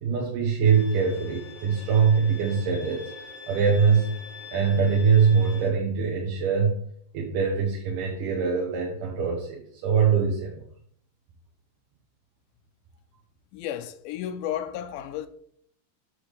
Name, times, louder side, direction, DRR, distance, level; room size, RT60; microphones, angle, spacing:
voice 1, 0.0-3.1 3.5-4.1 4.5-6.8 7.1-10.6, right 6 dB, 80° right, 2.7 m, -23 dB
Bowed string instrument, 0.6-5.7, left 4 dB, 30° left, 0.6 m, -44 dB
voice 2, 13.5-15.3, left 10 dB, 80° left, 2.0 m, -33 dB
9.6 x 3.3 x 6.5 m
omnidirectional pair, 3.8 m